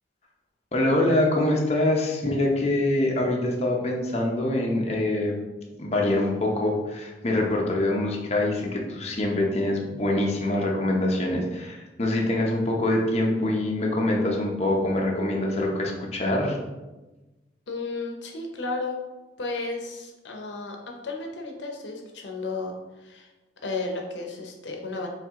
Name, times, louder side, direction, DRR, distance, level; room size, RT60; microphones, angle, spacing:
voice 1, 0.7-5.4 5.8-16.6, left 1 dB, 35° left, -1 dB, 0.7 m, -24 dB
voice 2, 17.7-19.0 19.4-22.7 23.0-23.3 23.6-25.1, left 3 dB, 75° left, 2 dB, 0.8 m, -33 dB
4.5 x 3.2 x 3.6 m, 1.1 s
head